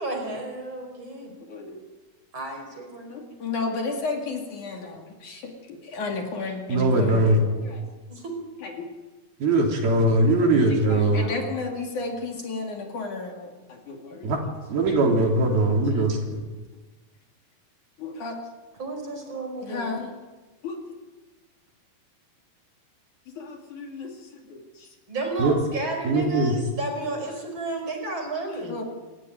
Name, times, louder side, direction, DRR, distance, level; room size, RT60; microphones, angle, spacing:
voice 1, 0.0-1.3 2.3-3.3 3.9-4.1 8.1-8.3 18.8-19.9 25.1-28.8, right 2 dB, 30° right, 4 dB, 5.7 m, -32 dB
voice 2, 1.4-1.8 3.1-7.9 8.6-8.9 10.7-14.4 14.9-15.1 15.9-16.1 18.0-18.4 19.6-20.1 20.6-20.8 23.3-25.0 25.9-26.6 28.5-28.8, left 3 dB, 55° left, 2 dB, 3.9 m, -34 dB
voice 3, 6.7-7.4 9.4-11.3 14.2-14.4 14.7-16.2 25.4-25.5 26.1-26.6, right 2 dB, 70° right, 1 dB, 5.5 m, -20 dB
28.0 x 15.0 x 9.5 m, 1.3 s
omnidirectional pair, 4.5 m